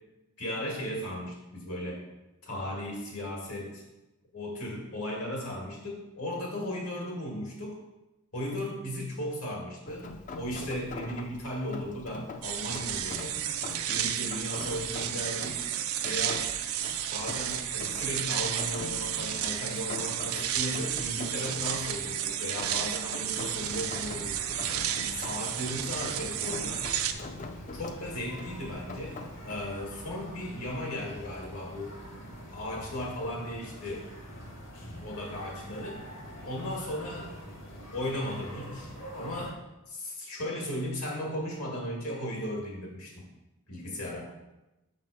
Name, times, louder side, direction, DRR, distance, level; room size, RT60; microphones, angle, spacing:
voice 1, 0.4-2.0 2.4-3.8 4.3-7.8 8.3-10.1 10.3-13.4 13.9-15.6 16.0-16.5 17.1-24.4 25.1-26.8 27.7-32.0 32.5-34.1 35.0-36.0 36.4-37.3 37.9-39.6 39.9-43.3 43.7-44.3, left 1 dB, 80° left, -2 dB, 2.1 m, -36 dB
Rain, 9.9-29.6, left 3 dB, 35° left, 0.4 m, -44 dB
sound 1, 12.4-27.1, right 10 dB, 75° right, 0.5 m, -32 dB
sound 2, 23.3-39.5, equal, 55° left, 1.1 m, -45 dB
6.8 x 4.0 x 5.0 m, 1.0 s
head